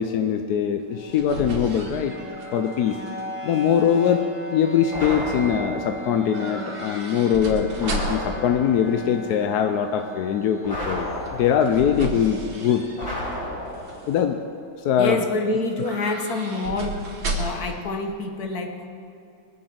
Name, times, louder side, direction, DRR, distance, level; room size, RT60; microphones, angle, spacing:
voice 1, 0.0-2.1 2.5-3.0 3.4-12.8 14.1-14.4 14.8-15.2, left 8 dB, 65° left, 6 dB, 1.0 m, -22 dB
sound 1, 0.8-3.2 3.5-4.1 6.3-8.4 11.2-13.3 13.7-14.2 15.7-17.8 18.1-18.2, right 2 dB, 85° right, 2.9 m, -34 dB
sound 2, 0.9-14.8, left 1 dB, 5° left, 1.5 m, -39 dB
sound 3, 4.9-6.0 7.8-8.9 10.6-11.8 13.0-14.1, left 1 dB, 35° left, 4.1 m, -32 dB
voice 2, 15.0-17.0 17.4-18.9, left 2 dB, 50° left, 4 dB, 1.6 m, -27 dB
21.5 x 7.9 x 7.9 m, 2.6 s
omnidirectional pair, 2.2 m